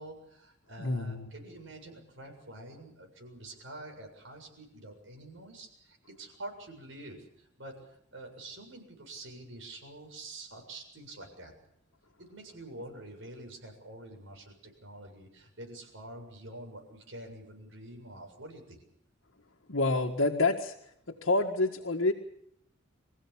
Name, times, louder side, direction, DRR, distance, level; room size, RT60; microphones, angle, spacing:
voice 1, 0.0-11.5 12.2-18.8, right 1 dB, 70° right, 3 dB, 7.3 m, -47 dB
voice 2, 0.8-1.3 19.7-20.7 21.1-22.1, left 2 dB, 80° left, 1 dB, 1.8 m, -28 dB
26.0 x 15.5 x 8.7 m, 0.74 s
head